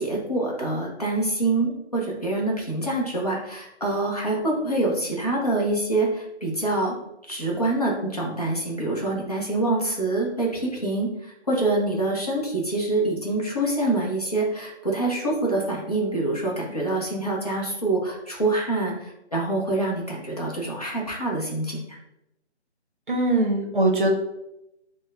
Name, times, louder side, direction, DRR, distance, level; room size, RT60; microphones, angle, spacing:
voice 1, 0.0-6.9 7.3-22.0, right 2 dB, 35° left, -3 dB, 0.7 m, -26 dB
voice 2, 23.1-24.1, right 2 dB, 45° right, 1 dB, 0.7 m, -21 dB
6.0 x 2.1 x 2.4 m, 0.86 s
figure-of-eight pair, 170°, 35 cm